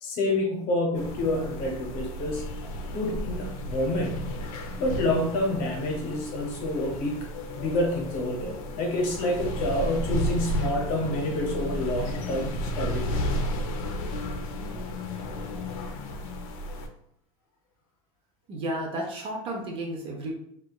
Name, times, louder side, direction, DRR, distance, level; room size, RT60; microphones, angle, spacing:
voice 1, 0.0-2.4 2.9-4.4 4.8-7.3 7.6-13.1, left 1 dB, 45° left, 0 dB, 0.8 m, -28 dB
sound 1, 0.9-16.9, equal, 65° left, 0.5 m, -33 dB
voice 2, 18.5-20.3, right 1 dB, 30° right, 1 dB, 0.5 m, -32 dB
2.7 x 2.3 x 2.3 m, 0.73 s
supercardioid pair, 140°, 19 cm